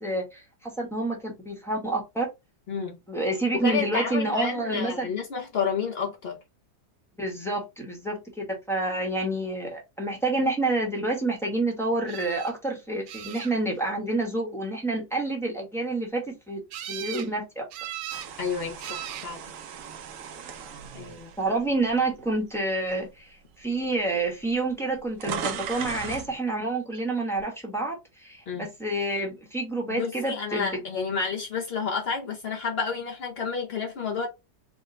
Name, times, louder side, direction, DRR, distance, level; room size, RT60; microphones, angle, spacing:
voice 1, 0.0-2.3 3.1-5.1 7.2-8.2 8.7-16.6 16.9-17.6 21.4-30.8, right 2 dB, ahead, 0.7 m, -28 dB
voice 2, 3.6-6.4 18.4-19.5 20.9-21.3 28.5-28.7 29.9-34.3, left 5 dB, 65° left, 0.6 m, -30 dB
sound 1, 12.1-12.5 13.1-13.8 16.7-17.3 17.7-18.3 18.8-19.3 20.2-20.7 26.9-27.0 27.4-27.5, right 11 dB, 85° right, 1.2 m, -38 dB
sound 2, 18.1-22.4 22.9-23.1 24.0-24.1 24.3-26.3, right 8 dB, 70° right, 0.8 m, -38 dB
3.6 x 2.1 x 3.7 m
omnidirectional pair, 1.8 m